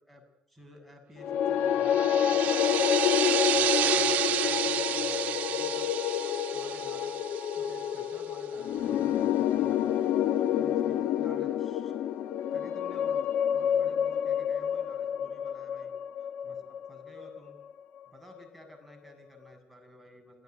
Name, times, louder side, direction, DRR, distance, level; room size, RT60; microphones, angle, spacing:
voice 1, 0.1-3.1 3.5-5.9 6.5-7.3 7.5-9.9 10.5-11.9 12.5-15.9 16.2-17.6 18.1-20.4, equal, 5° left, 6 dB, 7.5 m, -53 dB
sound 1, 1.2-17.5, left 9 dB, 85° left, 1.3 m, -28 dB
sound 2, 1.8-8.1, right 13 dB, 85° right, 0.9 m, -31 dB
27.5 x 17.0 x 9.6 m, 0.77 s
cardioid pair, 130°, 3 cm